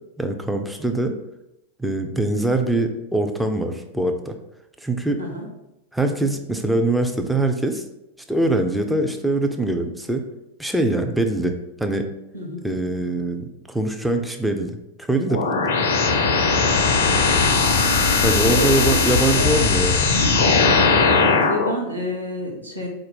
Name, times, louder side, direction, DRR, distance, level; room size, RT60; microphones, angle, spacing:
voice 1, 0.2-1.1 1.8-4.4 4.8-5.2 5.9-7.8 8.3-10.2 10.6-11.5 11.8-12.0 12.6-14.8 15.1-15.7 18.2-20.1, right 2 dB, ahead, 4 dB, 0.4 m, -23 dB
sound 1, 15.3-21.7, left 4 dB, 60° left, 0.5 m, -18 dB
voice 2, 19.3-19.8 21.2-22.9, equal, 85° right, -3 dB, 1.0 m, -29 dB
4.1 x 2.6 x 4.2 m, 0.89 s
figure-of-eight pair, 90°, 0 cm